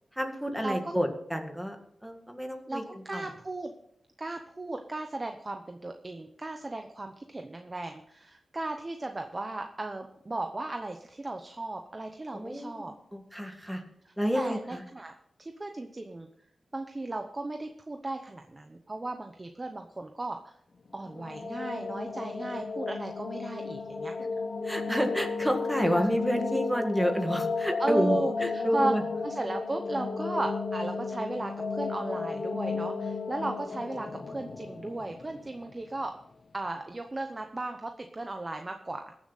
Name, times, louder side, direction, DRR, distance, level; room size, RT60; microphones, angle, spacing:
voice 1, 0.2-1.8 2.0-3.2 12.3-13.8 14.2-14.8 24.6-29.0, equal, 5° right, 4 dB, 1.8 m, -30 dB
voice 2, 2.7-3.7 4.2-12.9 14.1-15.1 15.4-16.3 16.7-20.5 20.9-24.1 26.0-26.1 27.8-28.9 29.2-36.1 36.5-39.0, right 2 dB, 25° right, 5 dB, 0.9 m, -36 dB
sound 1, 21.0-35.9, left 4 dB, 45° left, 1.0 m, -34 dB
21.0 x 7.2 x 4.1 m, 0.72 s
wide cardioid pair, 115°, 0 cm